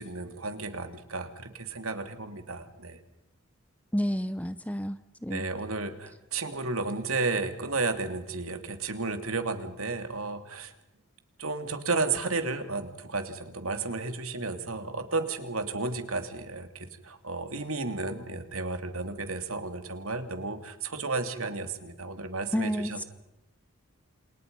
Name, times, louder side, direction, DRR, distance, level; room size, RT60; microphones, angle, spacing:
voice 1, 0.0-3.0 5.3-10.7 11.4-23.0, right 3 dB, 75° right, 7 dB, 2.9 m, -33 dB
voice 2, 3.9-5.5 22.5-23.0, equal, 5° left, 12 dB, 0.8 m, -30 dB
29.5 x 27.5 x 5.5 m, 0.84 s
head